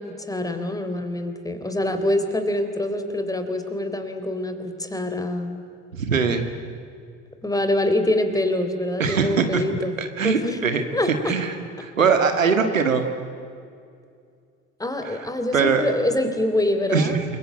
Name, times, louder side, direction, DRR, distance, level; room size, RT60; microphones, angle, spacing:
voice 1, 0.0-5.6 7.4-9.9 10.2-11.3 14.8-17.2, left 1 dB, 10° left, 7 dB, 3.8 m, -25 dB
voice 2, 5.9-6.5 9.0-9.6 10.0-10.8 11.3-11.6 11.8-13.1 15.0-15.3 15.5-15.9 16.9-17.2, right 5 dB, 85° right, 7 dB, 1.8 m, -21 dB
28.5 x 22.5 x 8.8 m, 2.3 s
figure-of-eight pair, 65°, 39 cm